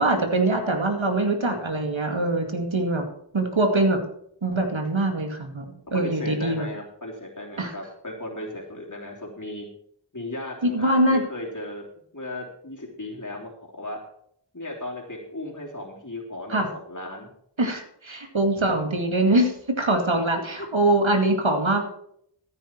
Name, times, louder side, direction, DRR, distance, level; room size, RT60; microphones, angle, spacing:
voice 1, 0.0-3.1 3.3-4.0 4.4-6.7 7.6-7.7 10.6-11.2 16.5-16.7 17.6-21.9, right 2 dB, 85° right, 4 dB, 2.3 m, -23 dB
voice 2, 5.9-9.7 10.1-11.8 12.1-14.0 14.5-17.3, left 1 dB, 40° left, -1 dB, 3.3 m, -36 dB
14.5 x 9.0 x 4.5 m, 0.68 s
wide cardioid pair, 45°, 46 cm